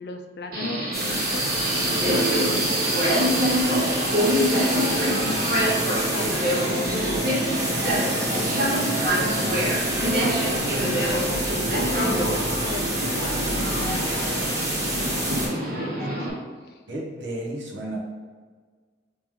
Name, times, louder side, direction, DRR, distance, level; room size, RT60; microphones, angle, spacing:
voice 1, 0.0-7.2 7.5-15.1 15.7-16.2 16.6-16.8, left 2 dB, 60° left, 5 dB, 0.4 m, -37 dB
Subway metro underground, 0.5-16.3, right 1 dB, 55° right, 0.9 m, -25 dB
sound 1, 0.9-15.5, right 1 dB, 15° right, 0.9 m, -28 dB
voice 2, 16.9-18.0, right 1 dB, 85° right, -2 dB, 0.9 m, -32 dB
3.1 x 3.0 x 3.6 m, 1.5 s
head